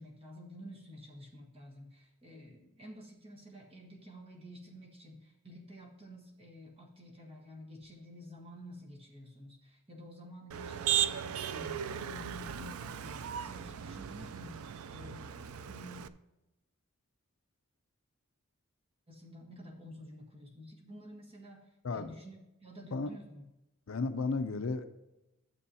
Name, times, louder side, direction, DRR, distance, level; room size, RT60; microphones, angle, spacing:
voice 1, 0.0-14.6 14.9-16.0 19.1-21.6 21.9-23.4, equal, 25° right, -2 dB, 1.5 m, -50 dB
Motor vehicle (road), 10.5-16.1, right 9 dB, 70° right, 0.4 m, -36 dB
voice 2, 23.9-24.9, left 3 dB, 60° left, 9 dB, 0.5 m, -33 dB
12.5 x 7.1 x 2.8 m, 0.94 s
head